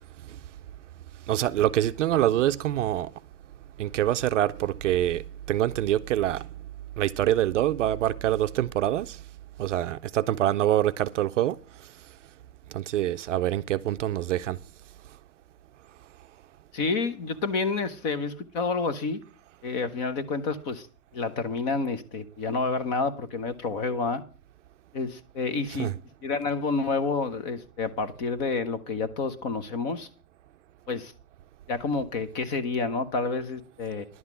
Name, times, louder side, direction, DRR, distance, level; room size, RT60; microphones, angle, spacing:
voice 1, 1.3-3.1 3.8-5.2 5.5-6.5 7.0-9.2 9.6-11.6 12.7-14.6 25.7-26.0, right 12 dB, 55° right, 0.5 m, -25 dB
voice 2, 16.7-19.2 19.6-20.9 21.1-24.2 24.9-25.9 26.2-30.1 30.9-31.1 31.7-34.1, left 4 dB, 30° left, 0.9 m, -29 dB
11.0 x 5.7 x 8.3 m
hypercardioid pair, 155°, 46 cm